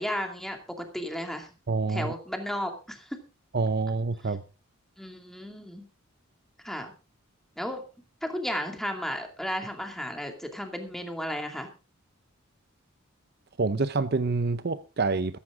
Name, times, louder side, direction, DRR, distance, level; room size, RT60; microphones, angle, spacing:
voice 1, 0.0-1.5 1.9-3.2 5.0-5.9 6.6-6.9 7.6-7.8 8.2-11.7, equal, ahead, 2.3 m, -34 dB
voice 2, 1.7-2.1 3.5-4.4 13.6-15.4, right 3 dB, 50° right, 0.6 m, -27 dB
14.5 x 14.0 x 3.7 m
head